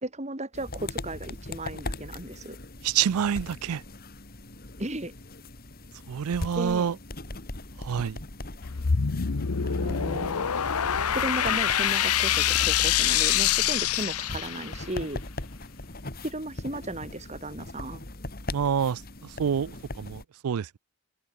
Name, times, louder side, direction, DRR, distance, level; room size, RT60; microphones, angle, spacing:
voice 1, 0.0-2.6 4.8-5.1 6.6-6.9 9.6-10.5 11.1-15.2 16.2-18.0, right 1 dB, 30° right, 2.3 m, -35 dB
sound 1, 0.5-20.2, left 2 dB, 40° left, 2.4 m, -40 dB
voice 2, 2.8-3.8 6.1-7.0 7.8-8.2 18.5-20.8, right 8 dB, 80° right, 0.4 m, -27 dB
sound 2, 8.6-14.9, left 9 dB, 80° left, 0.9 m, -25 dB
head